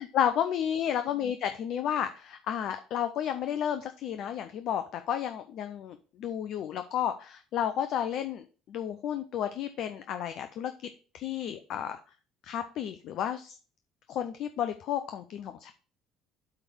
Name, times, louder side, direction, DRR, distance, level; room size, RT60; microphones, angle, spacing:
voice 1, 0.0-10.7 11.1-12.0 12.4-13.5 14.1-15.7, left 9 dB, 60° left, 8 dB, 0.6 m, -32 dB
8.2 x 3.5 x 6.3 m, 0.36 s
hypercardioid pair, 60°, 0 cm